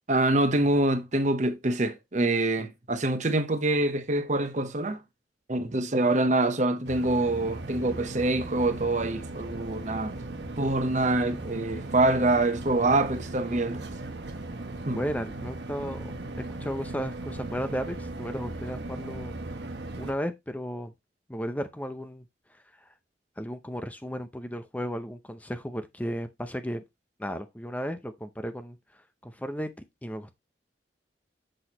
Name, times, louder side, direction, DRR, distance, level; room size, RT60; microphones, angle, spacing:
voice 1, 0.1-5.0 5.5-10.1 10.6-13.8 14.9-15.0, right 2 dB, 40° right, 1.0 m, -25 dB
sound 1, 6.9-20.1, right 2 dB, 70° right, 1.1 m, -38 dB
voice 2, 14.9-16.2 16.6-19.3 20.0-20.9 21.3-22.2 22.8-22.9 23.4-26.8 27.2-29.7 30.0-30.4, equal, 10° left, 0.6 m, -34 dB
7.7 x 6.3 x 2.9 m
head